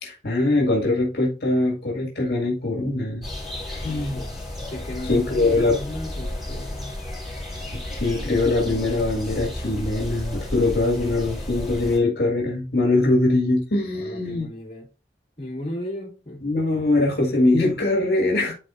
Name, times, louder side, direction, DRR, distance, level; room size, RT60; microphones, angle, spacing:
voice 1, 0.0-3.3 3.7-4.2 5.0-5.8 8.0-14.5 16.4-18.5, left 2 dB, 60° left, 1.9 m, -22 dB
sound 1, 3.2-12.0, left 1 dB, ahead, 3.0 m, -33 dB
voice 2, 4.7-6.9 13.9-14.9 15.4-16.4, left 1 dB, 35° left, 2.6 m, -35 dB
12.0 x 4.2 x 2.5 m
head